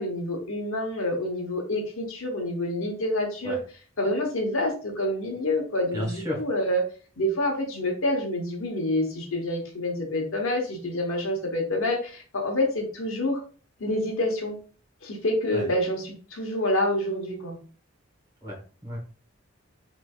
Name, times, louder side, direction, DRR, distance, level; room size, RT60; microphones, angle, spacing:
voice 1, 0.0-3.6 4.0-6.8 7.2-13.4 13.8-14.6 15.0-17.6, left 1 dB, 75° left, 2 dB, 0.9 m, -27 dB
voice 2, 5.9-6.4 15.5-15.7 18.4-19.0, left 1 dB, 15° right, -3 dB, 1.0 m, -32 dB
3.2 x 3.1 x 2.3 m, 0.39 s
head